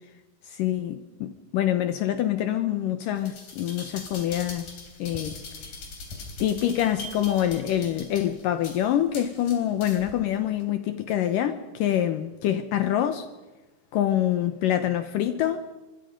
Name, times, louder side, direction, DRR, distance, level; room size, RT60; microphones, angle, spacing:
voice 1, 0.4-5.7 6.4-13.3 13.9-15.7, left 11 dB, 70° left, 2.2 m, -26 dB
sound 1, 3.2-10.2 10.6-10.7, left 3 dB, 55° left, 4.9 m, -41 dB
25.0 x 23.0 x 5.2 m
omnidirectional pair, 4.6 m